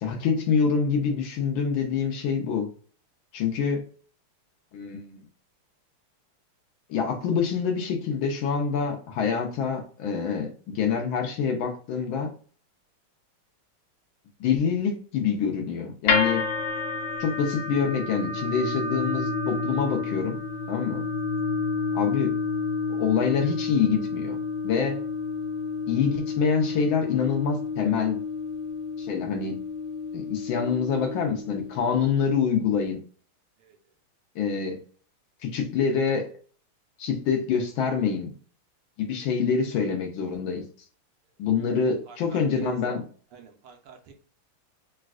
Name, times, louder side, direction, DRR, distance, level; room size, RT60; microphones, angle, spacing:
voice 1, 0.0-2.7 3.3-3.8 4.7-5.2 6.9-12.3 14.4-16.5 17.2-20.4 20.7-21.1 21.9-22.3 22.9-24.4 24.6-25.0 25.9-28.2 29.0-29.6 30.1-33.0 34.4-34.8 35.4-36.3 37.0-38.3 39.0-40.6 41.4-43.0, left 6 dB, 75° left, 3 dB, 1.3 m, -26 dB
sound 1, 16.1-32.3, left 4 dB, 90° left, 0.8 m, -30 dB
voice 2, 42.1-43.0 43.3-44.1, right 6 dB, 80° right, 4 dB, 1.6 m, -42 dB
4.0 x 2.2 x 2.4 m, 0.42 s
omnidirectional pair, 2.4 m